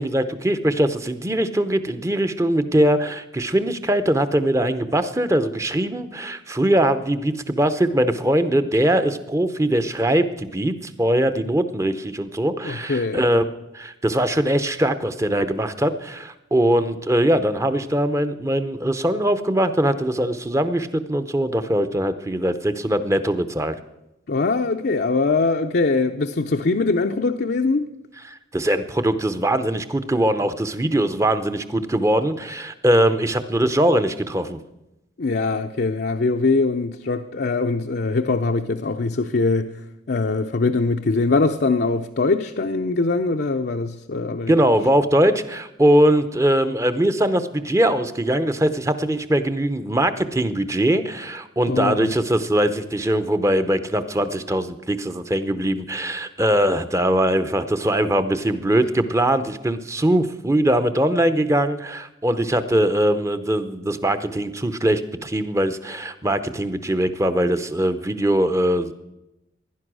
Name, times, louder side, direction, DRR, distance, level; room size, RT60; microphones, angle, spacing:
voice 1, 0.0-13.5 13.7-23.7 28.3-34.6 44.5-68.9, right 1 dB, 15° right, 0.7 m, -21 dB
voice 2, 12.6-13.2 24.3-27.9 35.2-39.7 40.1-44.5 51.6-52.1, left 3 dB, 55° left, 0.6 m, -22 dB
16.0 x 11.0 x 6.2 m
head